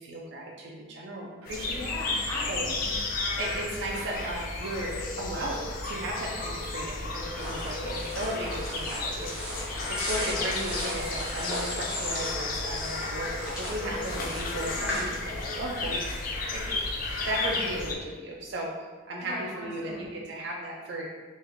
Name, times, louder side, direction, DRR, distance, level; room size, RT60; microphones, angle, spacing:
voice 1, 0.0-1.8 2.5-2.7 3.4-4.9 5.2-9.3 10.1-16.8 17.2-18.7 19.1-21.1, right 1 dB, 55° right, -2 dB, 0.4 m, -35 dB
sound 1, 1.5-17.9, left 3 dB, 45° left, 0.3 m, -33 dB
voice 2, 1.7-3.0 14.7-15.0 19.2-20.2, left 1 dB, 70° left, -8 dB, 1.5 m, -39 dB
sound 2, 7.3-15.0, equal, 5° right, 0.7 m, -37 dB
3.1 x 2.2 x 3.5 m, 1.4 s
head